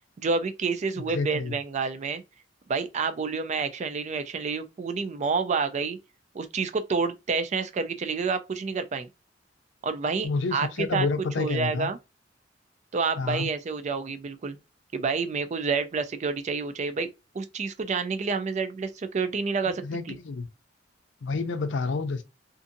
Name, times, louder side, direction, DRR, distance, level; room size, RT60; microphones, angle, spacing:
voice 1, 0.2-2.2 2.7-6.0 6.3-9.1 9.8-11.1 11.4-12.0 12.9-14.6 14.9-17.1 17.3-20.2, right 4 dB, 40° right, 0.4 m, -29 dB
voice 2, 1.1-1.6 10.2-11.9 13.2-13.5 19.8-20.5 21.2-22.2, left 4 dB, 80° left, 0.5 m, -29 dB
2.6 x 2.5 x 2.5 m
head